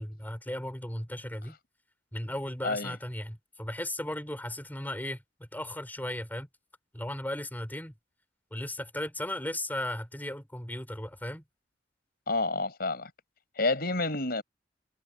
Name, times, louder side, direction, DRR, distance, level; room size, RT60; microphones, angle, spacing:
voice 1, 0.0-1.6 2.1-6.5 6.9-7.9 8.5-11.4, left 1 dB, 10° left, 4.1 m, -36 dB
voice 2, 2.6-3.0 12.3-13.1 13.6-14.4, left 3 dB, 60° left, 6.2 m, -29 dB
head